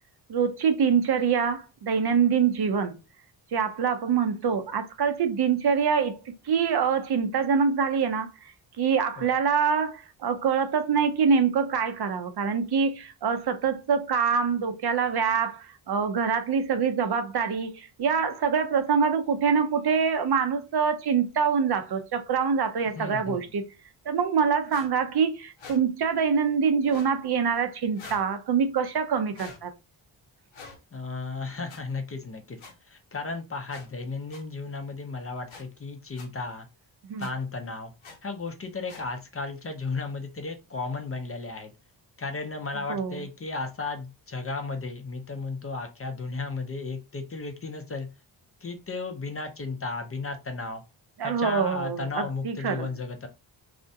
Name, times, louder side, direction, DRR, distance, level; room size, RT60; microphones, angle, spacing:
voice 1, 0.3-2.9 3.5-6.2 6.4-23.6 24.1-29.7 37.0-37.3 42.9-43.2 51.2-52.9, right 6 dB, 55° right, 0.6 m, -25 dB
voice 2, 22.8-23.4 30.9-32.6 32.8-36.7 37.2-37.9 38.2-41.7 42.2-48.1 48.6-50.8 51.2-53.3, left 3 dB, 30° left, 0.5 m, -34 dB
sound 1, 24.7-24.9 25.6-25.8 26.8-27.1 28.0-28.3 29.3-29.6 30.5-30.8 31.7-31.8 32.6-32.7 33.7-33.9 34.3-34.4 35.5-35.6 36.2-36.3 37.2-37.3 38.0-38.2 38.9-39.1, left 4 dB, 85° left, 0.8 m, -45 dB
2.4 x 2.1 x 2.6 m
cardioid pair, 60°, 47 cm